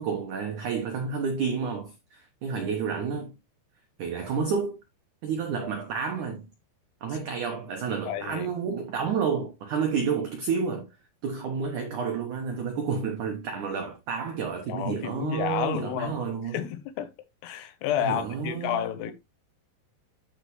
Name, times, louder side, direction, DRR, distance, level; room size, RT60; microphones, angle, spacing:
voice 1, 0.0-3.3 4.0-4.8 5.2-6.5 7.0-10.9 11.2-16.5 18.0-19.1, right 6 dB, 85° right, 1.7 m, -30 dB
voice 2, 8.1-8.5 14.7-16.2 16.4-17.1 17.4-19.1, left 10 dB, 75° left, 2.7 m, -30 dB
11.5 x 5.1 x 3.1 m
omnidirectional pair, 5.3 m